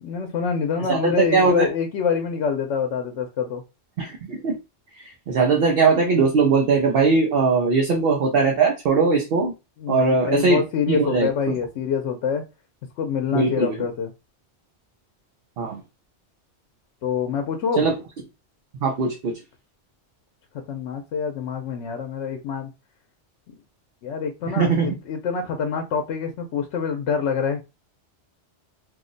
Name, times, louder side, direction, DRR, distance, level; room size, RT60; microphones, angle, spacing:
voice 1, 0.0-3.6 9.8-12.4 13.0-14.1 17.0-17.9 20.5-22.7 24.0-27.6, left 6 dB, 80° left, 4 dB, 0.9 m, -26 dB
voice 2, 0.9-1.7 4.0-4.6 5.3-9.5 9.9-10.6 10.9-11.3 13.3-13.7 15.6-15.8 17.8-18.0 18.8-19.3 24.5-25.0, right 4 dB, 65° right, 1 dB, 0.8 m, -20 dB
2.6 x 2.1 x 3.8 m, 0.26 s
omnidirectional pair, 1.2 m